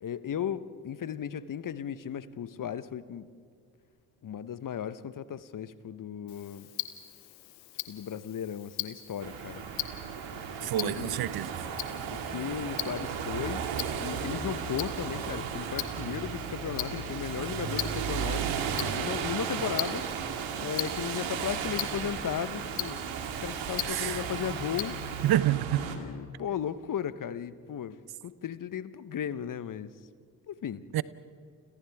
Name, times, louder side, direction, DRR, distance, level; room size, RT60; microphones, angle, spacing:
voice 1, 0.0-3.3 4.2-6.7 7.9-9.6 10.6-11.2 12.1-13.6 14.0-20.1 20.6-23.0 23.4-25.0 25.7-28.0 28.2-29.9 30.5-30.8, left 9 dB, 40° left, 1.0 m, -36 dB
Tick-tock, 6.3-25.3, left 15 dB, 85° left, 1.0 m, -41 dB
sound 1, 9.2-26.0, right 7 dB, 65° right, 2.4 m, -35 dB
voice 2, 10.6-11.6 23.9-24.2 25.2-25.9 30.9-31.0, right 13 dB, 50° right, 0.7 m, -28 dB
29.5 x 27.0 x 3.6 m
hypercardioid pair, 50°, 50 cm